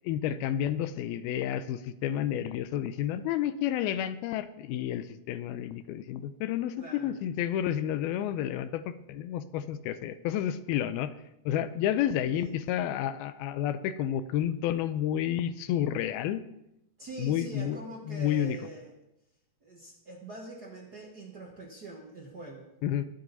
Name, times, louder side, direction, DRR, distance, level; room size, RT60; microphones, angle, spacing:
voice 1, 0.0-11.1 11.5-16.4 17.2-17.8 18.1-18.6 22.8-23.1, left 10 dB, 85° left, 13 dB, 2.6 m, -30 dB
voice 2, 6.7-7.1 12.3-12.5 17.0-18.9 19.6-22.7, right 2 dB, 75° right, -1 dB, 0.9 m, -44 dB
20.0 x 7.9 x 4.1 m, 0.85 s
omnidirectional pair, 4.3 m